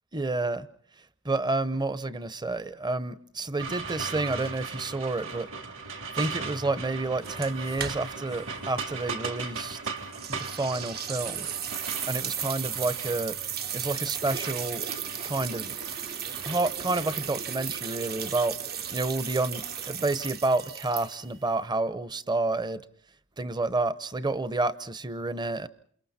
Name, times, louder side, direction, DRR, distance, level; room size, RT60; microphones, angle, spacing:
voice 1, 0.1-0.7 1.2-5.5 6.1-9.8 10.3-11.5 12.1-13.4 13.7-14.8 15.2-15.8 16.4-18.6 18.9-22.8 23.4-25.7, right 2 dB, 20° right, 15 dB, 0.9 m, -29 dB
sound 1, 3.6-20.3, right 4 dB, 60° right, 3.4 m, -39 dB
sound 2, 7.2-8.4 8.6-8.7 10.1-21.4, right 9 dB, 45° right, 1.1 m, -35 dB
28.5 x 28.5 x 4.3 m, 0.62 s
head